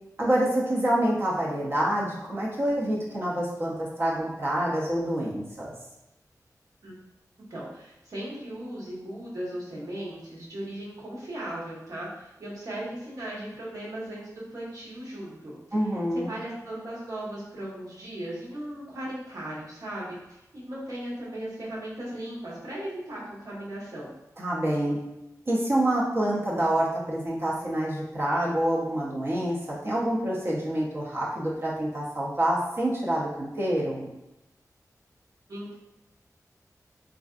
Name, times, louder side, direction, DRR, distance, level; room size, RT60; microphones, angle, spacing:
voice 1, 0.2-5.7 15.7-16.3 24.4-25.0 25.5-29.6 29.8-34.1, right 1 dB, 40° right, -5 dB, 0.6 m, -27 dB
voice 2, 7.5-15.5 16.3-24.1 35.5-35.7, right 1 dB, 65° right, -7 dB, 1.1 m, -37 dB
3.3 x 2.5 x 2.4 m, 0.94 s
wide cardioid pair, 105°, 6 cm